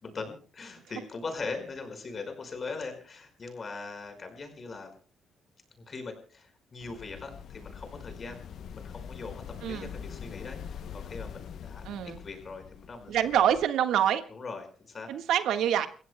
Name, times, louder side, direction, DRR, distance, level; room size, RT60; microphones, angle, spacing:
voice 1, 0.0-4.9 5.9-8.4 8.7-10.6 10.9-11.8 12.2-13.1 14.3-15.1, left 4 dB, 40° left, 6 dB, 5.0 m, -40 dB
sound 1, 6.8-13.7, left 7 dB, 65° left, 0.7 m, -43 dB
voice 2, 11.8-12.2 13.1-14.2 15.1-15.9, right 10 dB, 80° right, 7 dB, 1.5 m, -26 dB
29.5 x 15.5 x 2.2 m, 0.40 s
cardioid pair, 90°, 0 cm